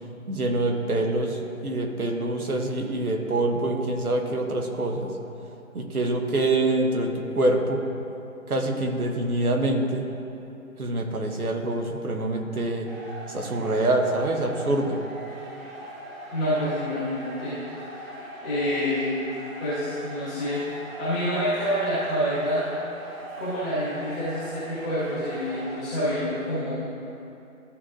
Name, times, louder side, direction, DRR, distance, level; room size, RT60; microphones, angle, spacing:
voice 1, 0.3-5.1 5.7-7.8 8.5-10.1 10.8-12.9 13.3-15.0, right 2 dB, 85° right, 3 dB, 1.2 m, -25 dB
sound 1, 12.9-25.8, right 1 dB, 45° right, 1.3 m, -41 dB
voice 2, 16.3-17.5 18.4-19.2 19.6-22.6 23.4-26.9, equal, 5° left, -16 dB, 0.7 m, -27 dB
13.0 x 4.8 x 2.6 m, 2.8 s
figure-of-eight pair, 150°, 43 cm